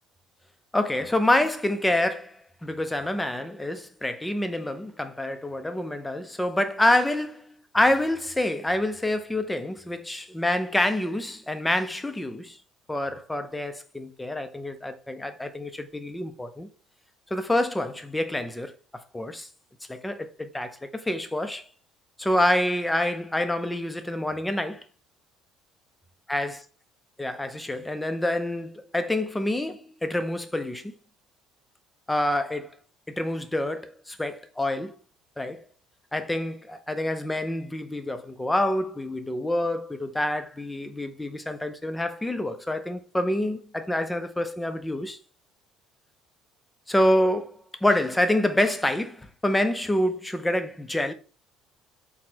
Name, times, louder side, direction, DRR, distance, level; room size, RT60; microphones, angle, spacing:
voice 1, 0.7-12.6 12.9-16.7 17.3-19.5 19.9-21.7 22.2-24.8 26.3-26.6 27.2-30.9 32.1-32.7 33.1-34.9 35.4-35.7 36.1-45.2 46.9-51.1, left 1 dB, 10° left, 0.4 m, -27 dB
4.2 x 2.0 x 2.7 m
cardioid pair, 120°, 0 cm